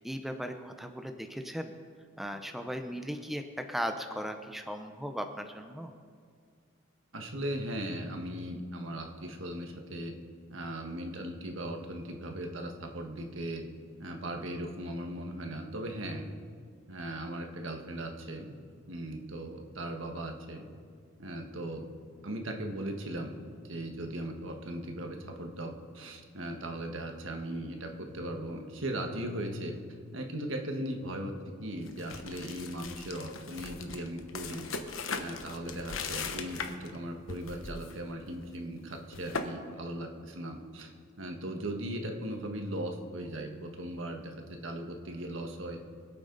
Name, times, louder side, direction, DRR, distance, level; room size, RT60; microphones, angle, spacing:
voice 1, 0.0-1.7 2.2-5.9, equal, ahead, 6 dB, 0.6 m, -37 dB
voice 2, 7.1-10.1 10.5-13.6 14.0-16.3 16.9-18.5 18.9-20.7 21.2-21.8 22.2-29.8 30.1-31.3 31.6-34.7 35.1-40.9 41.2-44.3 44.6-45.8, right 1 dB, 75° right, 3 dB, 1.5 m, -38 dB
sound 1, 31.9-37.0 37.3-38.0 38.2-38.4 38.9-39.5, left 4 dB, 90° left, 1.0 m, -39 dB
24.5 x 8.6 x 3.9 m, 2.1 s
head